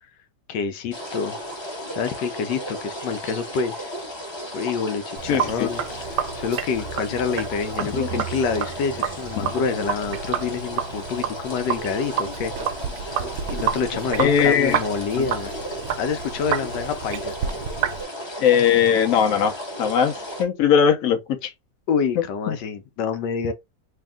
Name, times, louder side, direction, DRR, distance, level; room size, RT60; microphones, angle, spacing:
voice 1, 0.5-1.4 1.9-3.9 4.5-5.8 6.1-12.5 13.5-15.5 16.0-17.3 21.9-23.5, left 6 dB, 85° left, 1.3 m, -27 dB
sound 1, 0.9-20.4, equal, 20° left, 0.8 m, -34 dB
Sink (filling or washing), 5.2-18.0, right 9 dB, 70° right, 0.9 m, -30 dB
voice 2, 5.3-5.7 7.8-8.1 9.4-9.5 14.2-14.8 15.2-15.3 18.4-20.1 20.4-21.5 22.2-22.6, left 8 dB, 60° left, 1.0 m, -20 dB
3.4 x 2.7 x 3.5 m
omnidirectional pair, 1.8 m